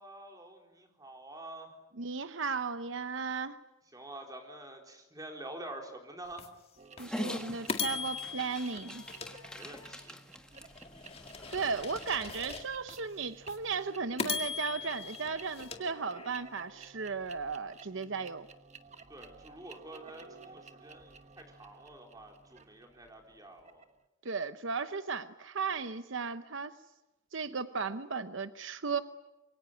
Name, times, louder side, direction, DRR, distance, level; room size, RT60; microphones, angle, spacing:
voice 1, 0.0-1.8 3.8-6.5 9.5-10.2 19.1-23.9, right 1 dB, 20° right, 2 dB, 4.1 m, -47 dB
voice 2, 2.0-3.6 7.0-9.0 11.5-18.5 24.2-26.7 27.3-29.0, right 5 dB, 70° right, 11 dB, 0.8 m, -35 dB
sound 1, 6.4-6.5 7.0-7.1 7.7-10.0 10.5-13.0 13.5-13.6 14.2-16.5, left 5 dB, 30° left, 1.9 m, -39 dB
sound 2, 6.8-24.0, right 4 dB, 35° right, 1.2 m, -54 dB
Dog, 7.0-12.3, equal, 5° left, 1.5 m, -44 dB
26.0 x 23.5 x 9.3 m, 1.0 s
head